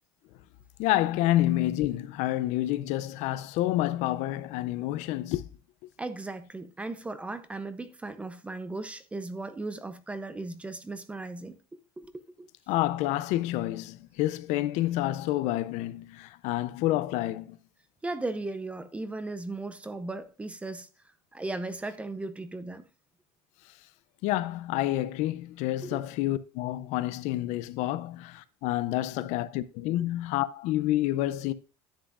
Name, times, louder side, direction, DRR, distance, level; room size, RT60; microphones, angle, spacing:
voice 1, 0.8-5.4 12.7-17.6 24.2-31.5, left 15 dB, 60° left, 0.5 m, -28 dB
voice 2, 6.0-11.6 12.0-12.5 18.0-20.9 21.3-22.9 25.8-26.0, right 2 dB, 10° right, 0.5 m, -37 dB
10.0 x 7.5 x 2.4 m
cardioid pair, 160°, 14 cm